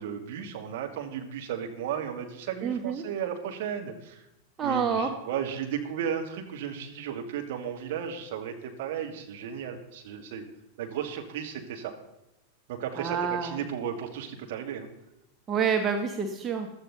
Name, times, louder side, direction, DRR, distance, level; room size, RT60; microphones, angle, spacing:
voice 1, 0.0-4.3 4.6-10.5 10.8-11.9 12.7-14.9, right 8 dB, 50° right, 3 dB, 2.2 m, -34 dB
voice 2, 2.6-3.0 4.6-5.1 13.0-13.6 15.5-16.7, right 6 dB, 25° right, 4 dB, 1.3 m, -28 dB
15.5 x 12.5 x 4.0 m, 0.89 s
figure-of-eight pair, 90°, 0 cm